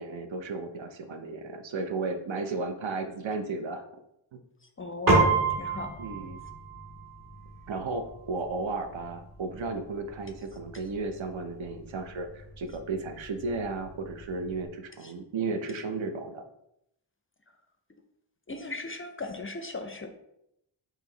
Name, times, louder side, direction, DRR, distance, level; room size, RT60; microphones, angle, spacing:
voice 1, 0.0-3.9 4.3-4.4 6.0-6.4 7.7-16.4, right 3 dB, 70° right, 7 dB, 0.7 m, -34 dB
voice 2, 4.8-5.9 15.0-15.1 18.5-20.1, left 3 dB, 30° left, 6 dB, 0.4 m, -37 dB
Piano, 5.1-14.7, right 3 dB, 45° right, 1.7 m, -32 dB
4.5 x 2.9 x 3.8 m, 0.80 s
wide cardioid pair, 105°, 47 cm